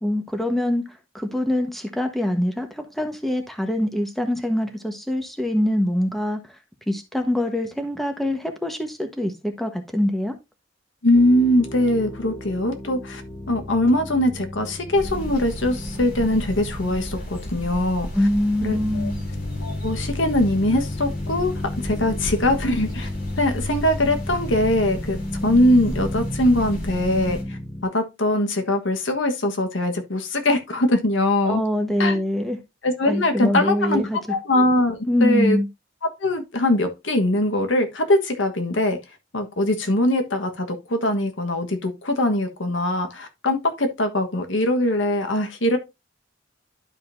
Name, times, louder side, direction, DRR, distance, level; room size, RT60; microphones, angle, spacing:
voice 1, 0.0-6.6 6.9-10.3 18.1-19.2 31.4-32.6 33.1-34.2 35.1-35.7, left 1 dB, ahead, 1.2 m, -24 dB
voice 2, 11.0-13.2 13.5-18.1 18.6-19.1 19.6-21.5 21.8-23.1 23.4-31.6 32.0-32.2 32.8-34.0 34.3-35.6 36.2-39.0 39.3-45.8, left 1 dB, 75° left, 1.4 m, -22 dB
sound 1, 11.1-27.8, left 1 dB, 20° left, 1.0 m, -33 dB
sound 2, 14.9-27.4, equal, 50° left, 3.1 m, -34 dB
11.5 x 5.2 x 2.6 m
head